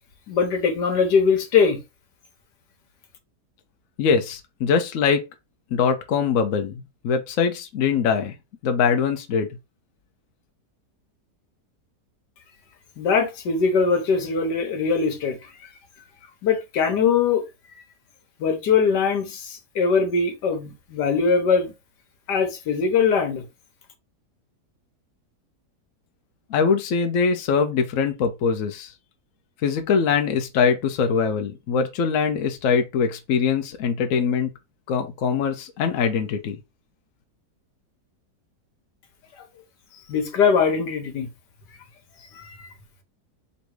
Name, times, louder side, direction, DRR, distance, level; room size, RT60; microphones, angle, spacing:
voice 1, 0.3-1.8 13.0-15.7 16.4-17.4 18.4-21.7 22.3-23.4 40.1-41.3 42.3-42.7, left 5 dB, 85° left, 1.6 m, -21 dB
voice 2, 4.0-5.3 5.7-8.3 8.6-9.5 26.5-28.9 29.6-34.5 34.9-36.6, left 6 dB, 60° left, 1.0 m, -22 dB
4.0 x 2.7 x 4.7 m
omnidirectional pair, 1.8 m